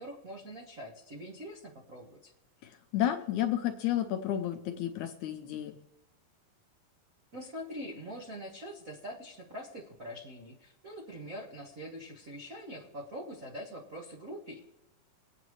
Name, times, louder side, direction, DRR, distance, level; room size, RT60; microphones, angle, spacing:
voice 1, 0.0-2.3 7.3-14.6, equal, 80° right, -1 dB, 0.7 m, -44 dB
voice 2, 2.6-5.7, left 11 dB, 75° left, 5 dB, 1.8 m, -31 dB
22.5 x 8.9 x 3.2 m, 0.93 s
omnidirectional pair, 4.0 m